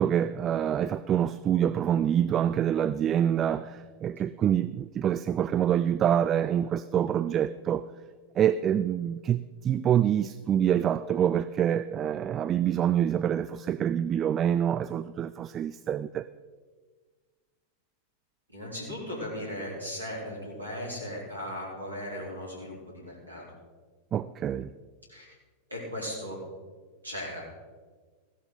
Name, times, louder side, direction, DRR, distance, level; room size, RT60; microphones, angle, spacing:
voice 1, 0.0-7.9 8.4-16.2 24.1-24.7, right 9 dB, 30° right, 16 dB, 0.3 m, -26 dB
voice 2, 18.5-23.4 25.1-25.3 25.7-26.4 27.0-27.4, left 1 dB, 80° right, -3 dB, 3.9 m, -37 dB
15.5 x 11.5 x 3.9 m, 1.5 s
figure-of-eight pair, 90°, 0 cm